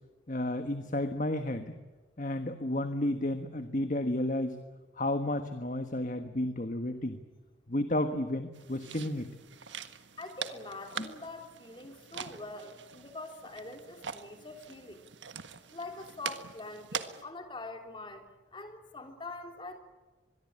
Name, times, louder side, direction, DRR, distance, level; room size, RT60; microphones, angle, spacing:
voice 1, 0.3-1.7 2.2-4.6 5.0-7.2 7.7-9.3 11.0-11.1, left 1 dB, 45° left, 8 dB, 1.4 m, -32 dB
sound 1, 8.5-17.2, right 7 dB, 85° right, 1.6 m, -43 dB
voice 2, 10.2-15.0 15.7-18.2 18.5-19.8, left 2 dB, 25° left, 5 dB, 3.4 m, -44 dB
25.0 x 22.0 x 8.9 m, 1.3 s
head